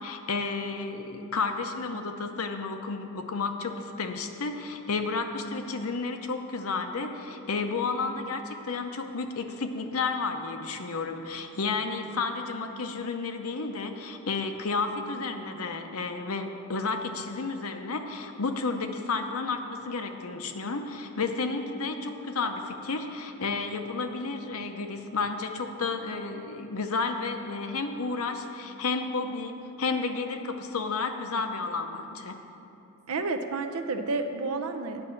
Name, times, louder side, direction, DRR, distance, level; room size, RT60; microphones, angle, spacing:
voice 1, 0.0-32.4, left 4 dB, 70° left, 6 dB, 0.8 m, -32 dB
voice 2, 33.1-35.1, right 3 dB, 75° right, 7 dB, 0.7 m, -30 dB
10.0 x 5.6 x 7.3 m, 2.9 s
head